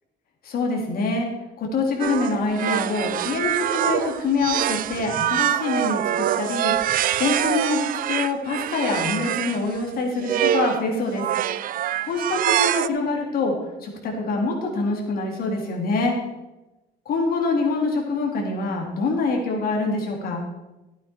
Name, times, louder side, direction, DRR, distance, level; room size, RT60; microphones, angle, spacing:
voice 1, 0.4-1.3 1.6-11.3 12.1-13.5 13.8-16.1 17.1-20.4, left 3 dB, 60° left, 0 dB, 3.6 m, -25 dB
sound 1, 2.0-9.6 10.2-10.8 11.2-12.9, right 12 dB, 55° right, 0.5 m, -24 dB
15.0 x 8.9 x 4.7 m, 1.0 s
cardioid pair, 110°, 17 cm